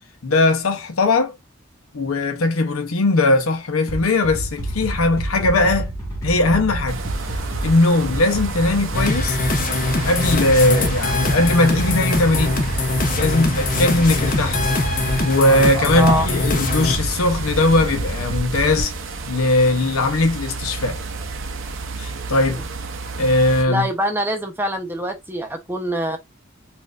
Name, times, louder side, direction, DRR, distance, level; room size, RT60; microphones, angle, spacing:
voice 1, 0.2-1.4 1.9-5.9 6.2-7.0 7.6-9.4 10.0-12.7 13.2-14.7 15.2-18.9 19.3-21.0 22.0-22.6 23.2-23.9, left 2 dB, 85° left, 0.7 m, -19 dB
sound 1, 3.9-18.8, right 1 dB, 15° left, 1.4 m, -28 dB
sound 2, 6.9-23.6, right 4 dB, 65° right, 0.6 m, -31 dB
sound 3, 8.9-17.0, left 3 dB, 40° left, 0.6 m, -23 dB
voice 2, 15.9-16.3 22.5-22.6 23.7-26.2, equal, 10° right, 0.7 m, -24 dB
4.3 x 2.4 x 2.4 m
head